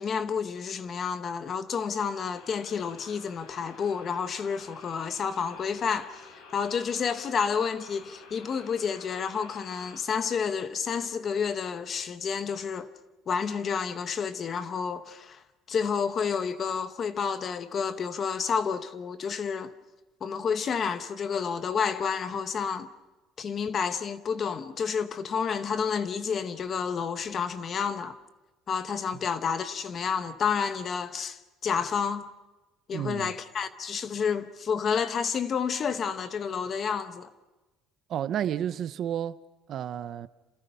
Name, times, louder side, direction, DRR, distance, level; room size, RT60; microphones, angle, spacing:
voice 1, 0.0-6.2 6.5-12.9 13.3-15.4 15.7-19.7 20.2-22.9 23.4-28.2 28.7-32.3 32.9-37.3, left 6 dB, 30° left, 1.0 m, -30 dB
sound 1, 2.2-10.0, left 4 dB, 90° left, 5.8 m, -50 dB
voice 2, 32.9-33.3 38.1-39.4 39.7-40.3, right 10 dB, 45° right, 0.8 m, -31 dB
29.0 x 27.5 x 5.7 m
cardioid pair, 165°, 0 cm